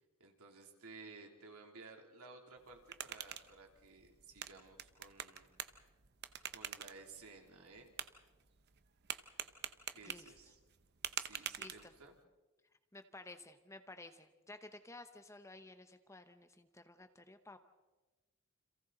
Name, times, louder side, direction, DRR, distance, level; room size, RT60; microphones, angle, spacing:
voice 1, 0.2-5.5 6.4-7.9 9.9-10.6 11.1-12.2, right 4 dB, 80° right, 2 dB, 3.1 m, -56 dB
sound 1, 2.6-12.2, right 10 dB, 50° right, 0.9 m, -47 dB
voice 2, 11.3-11.9 12.9-17.6, left 2 dB, 15° left, 9 dB, 0.9 m, -54 dB
30.0 x 27.0 x 4.0 m, 1.2 s
head